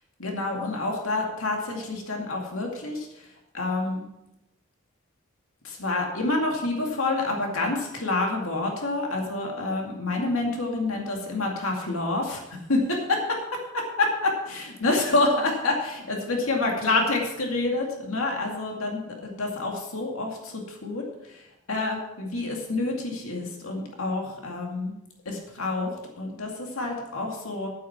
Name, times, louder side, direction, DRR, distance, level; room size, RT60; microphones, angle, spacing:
voice 1, 0.2-4.0 5.6-13.4 14.0-24.9 25.3-27.7, left 2 dB, 85° left, 0 dB, 2.2 m, -28 dB
9.2 x 9.1 x 5.9 m, 0.90 s
head